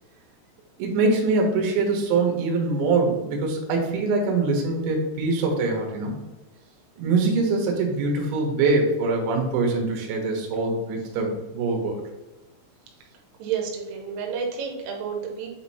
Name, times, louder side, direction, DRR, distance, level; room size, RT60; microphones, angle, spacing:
voice 1, 0.8-6.2 7.0-12.0, right 3 dB, 70° right, 1 dB, 3.3 m, -23 dB
voice 2, 13.4-15.5, right 6 dB, 90° right, 1 dB, 3.4 m, -30 dB
8.1 x 2.9 x 4.2 m, 1.1 s
omnidirectional pair, 5.6 m